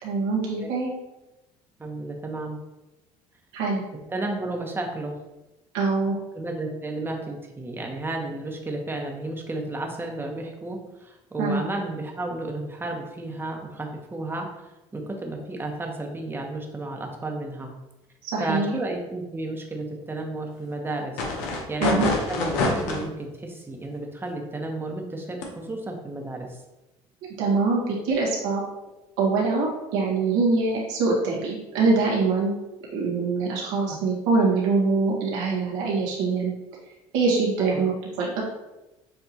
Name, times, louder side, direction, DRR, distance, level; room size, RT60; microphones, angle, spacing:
voice 1, 0.0-0.9 3.5-3.8 5.7-6.2 11.4-11.6 18.3-18.7 21.8-22.1 27.4-28.6 29.2-32.5 32.9-36.5 37.1-38.4, right 4 dB, 90° right, -4 dB, 1.5 m, -24 dB
voice 2, 1.8-2.6 4.1-5.1 6.3-14.5 14.9-17.7 18.4-21.2 21.7-26.6 33.9-34.0 37.6-37.8, right 2 dB, 15° right, 2 dB, 1.0 m, -32 dB
sound 1, 21.2-23.0 25.4-25.5, left 3 dB, 90° left, 0.9 m, -25 dB
6.9 x 2.7 x 2.9 m, 0.99 s
supercardioid pair, 90°, 13 cm